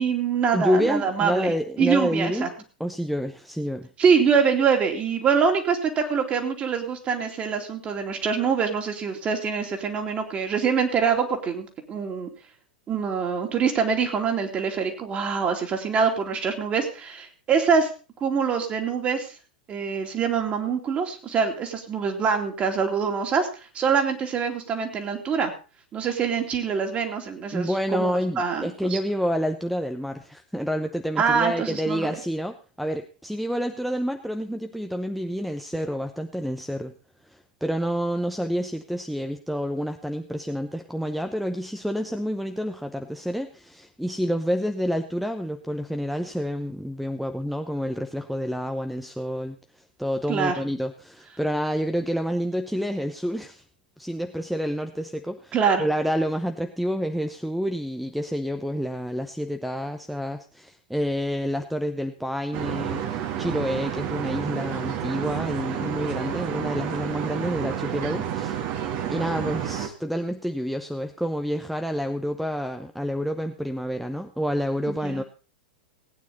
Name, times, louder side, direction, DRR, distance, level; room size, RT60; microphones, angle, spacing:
voice 1, 0.0-2.5 4.0-12.3 12.9-17.9 18.2-19.3 19.7-23.5 23.7-25.5 25.9-29.0 31.2-32.2 50.3-50.6 55.5-55.8 74.9-75.2, right 6 dB, 25° right, 4 dB, 2.7 m, -24 dB
voice 2, 0.5-2.5 2.8-3.9 27.5-36.9 37.2-53.6 54.0-68.6 69.1-75.2, equal, ahead, 8 dB, 0.7 m, -28 dB
sound 1, 62.5-69.9, right 9 dB, 40° right, 1.8 m, -30 dB
18.0 x 9.3 x 4.1 m, 0.35 s
figure-of-eight pair, 95°, 5 cm